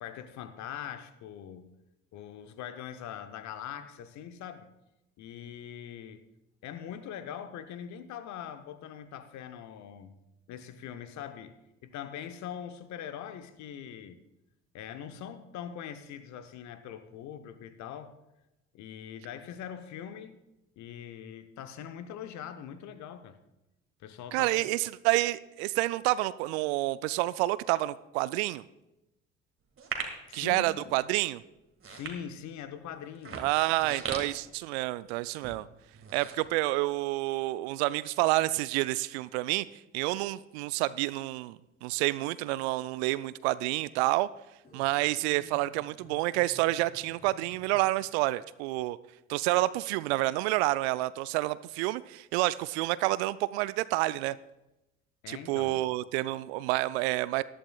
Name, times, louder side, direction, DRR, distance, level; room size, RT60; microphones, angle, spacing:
voice 1, 0.0-1.8 2.1-4.7 5.2-6.2 6.6-10.1 10.5-14.2 14.7-18.2 18.7-20.4 20.8-23.4 24.0-24.6 30.3-30.9 31.8-33.4 55.2-55.8, left 9 dB, 50° left, 11 dB, 0.9 m, -42 dB
voice 2, 24.3-28.6 30.3-31.4 33.4-35.7 36.1-39.7 39.9-44.3 44.7-49.0 49.3-54.4 55.3-57.4, right 18 dB, 65° right, 18 dB, 0.5 m, -29 dB
sound 1, 29.8-30.3 30.9-31.2 31.7-32.6 33.1-35.0 35.3-35.6 35.9-37.1 37.5-37.6, right 5 dB, 35° right, 1.9 m, -39 dB
sound 2, 44.6-48.1, left 1 dB, 25° left, 2.7 m, -55 dB
18.5 x 11.0 x 2.3 m, 0.94 s
figure-of-eight pair, 50°, 35 cm